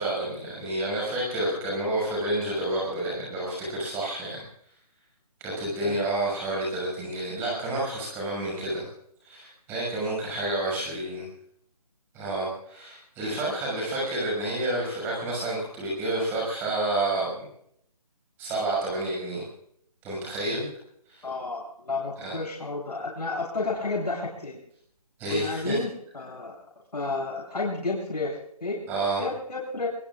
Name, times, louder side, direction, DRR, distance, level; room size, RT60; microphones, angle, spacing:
voice 1, 0.0-4.4 5.4-8.8 9.2-11.3 12.1-17.4 18.4-19.4 20.0-20.7 21.2-21.3 22.2-22.3 25.2-25.8 28.9-29.2, right 1 dB, 10° right, -3 dB, 6.6 m, -29 dB
voice 2, 21.2-24.6 25.3-26.5 26.9-28.8 29.2-29.9, left 3 dB, 85° left, -4 dB, 7.4 m, -31 dB
23.5 x 23.0 x 2.5 m, 0.69 s
hypercardioid pair, 165°, 20 cm